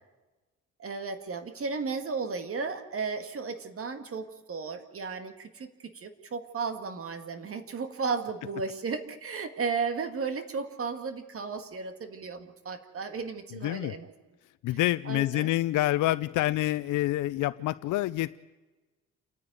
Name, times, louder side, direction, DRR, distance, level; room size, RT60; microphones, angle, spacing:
voice 1, 0.8-14.1 15.1-15.5, right 5 dB, 45° right, 8 dB, 2.1 m, -34 dB
voice 2, 13.5-13.9 14.6-18.4, left 16 dB, 90° left, 13 dB, 0.6 m, -27 dB
28.5 x 9.9 x 9.5 m, 1.2 s
cardioid pair, 90°, 30 cm